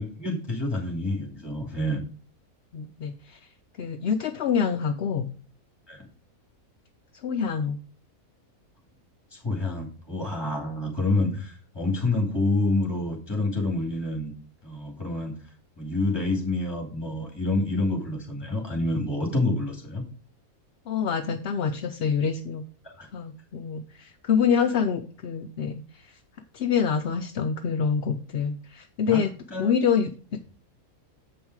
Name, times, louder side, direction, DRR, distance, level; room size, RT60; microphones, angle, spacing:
voice 1, 0.0-2.0 5.9-6.1 9.3-14.3 14.6-15.3 15.8-20.0 22.8-23.1 29.1-29.2 29.5-29.7, left 2 dB, 15° left, 1 dB, 2.4 m, -28 dB
voice 2, 2.7-3.4 3.8-5.3 7.2-7.8 20.9-22.6 23.1-26.1 26.5-29.3 29.6-30.1, left 6 dB, 60° left, 7 dB, 0.7 m, -26 dB
7.9 x 5.4 x 4.7 m, 0.39 s
omnidirectional pair, 1.5 m